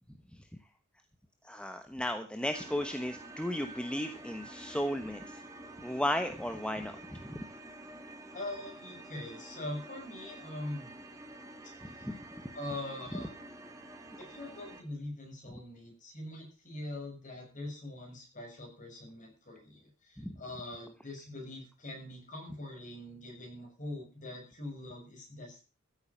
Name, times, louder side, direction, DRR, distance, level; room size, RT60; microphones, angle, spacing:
voice 1, 1.4-5.2 5.8-7.4 12.0-12.1 20.2-20.3, left 1 dB, 5° left, 7 dB, 1.1 m, -34 dB
sound 1, 2.4-14.8, right 1 dB, 15° right, 2.5 m, -49 dB
voice 2, 8.3-10.9 11.6-12.0 12.5-13.3 14.2-25.6, left 1 dB, 40° left, 2 dB, 7.3 m, -43 dB
14.5 x 8.8 x 7.2 m, 0.34 s
head